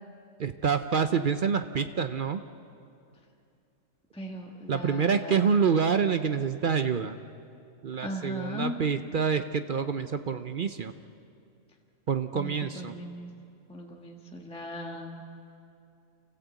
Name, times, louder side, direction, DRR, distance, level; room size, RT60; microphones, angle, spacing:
voice 1, 0.4-2.4 4.7-7.2 7.8-10.9 12.1-12.9, right 6 dB, 50° right, 9 dB, 0.6 m, -27 dB
voice 2, 4.1-5.5 8.0-8.7 12.3-13.3 13.7-15.2, left 1 dB, 5° left, 0 dB, 1.4 m, -38 dB
29.5 x 14.5 x 8.2 m, 2.6 s
omnidirectional pair, 1.4 m